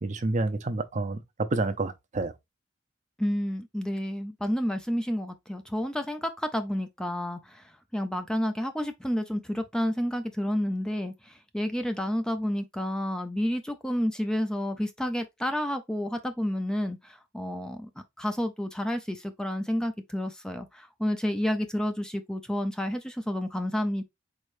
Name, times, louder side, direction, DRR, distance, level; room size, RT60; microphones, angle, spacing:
voice 1, 0.0-1.2 1.5-2.3, right 2 dB, 40° right, 0.6 m, -28 dB
voice 2, 3.2-17.9 18.2-24.0, equal, 5° left, 0.5 m, -30 dB
4.8 x 4.3 x 2.6 m
head